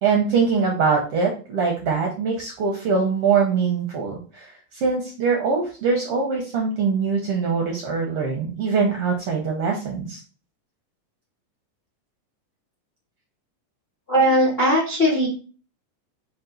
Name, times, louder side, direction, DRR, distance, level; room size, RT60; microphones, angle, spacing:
voice 1, 0.0-10.2, right 5 dB, 75° right, -1 dB, 1.3 m, -23 dB
voice 2, 14.1-15.3, equal, 45° left, -5 dB, 0.7 m, -19 dB
5.2 x 2.4 x 3.8 m, 0.37 s
omnidirectional pair, 3.4 m